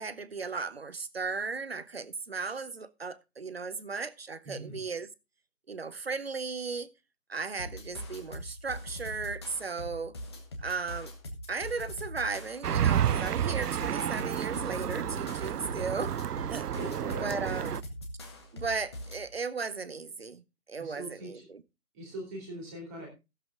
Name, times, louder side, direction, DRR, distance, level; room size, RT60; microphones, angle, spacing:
voice 1, 0.0-5.1 5.7-6.9 7.3-10.2 10.6-11.1 11.5-16.7 17.2-17.8 18.5-20.4 20.7-21.6, right 4 dB, 40° right, 0.8 m, -36 dB
voice 2, 4.4-4.8 16.7-17.6 20.8-21.5 21.9-23.1, right 1 dB, 10° right, 2.8 m, -41 dB
sound 1, 7.6-19.3, equal, 15° left, 1.3 m, -42 dB
sound 2, 12.6-17.8, right 10 dB, 75° right, 0.5 m, -30 dB
15.5 x 7.8 x 3.6 m
figure-of-eight pair, 165°, 47 cm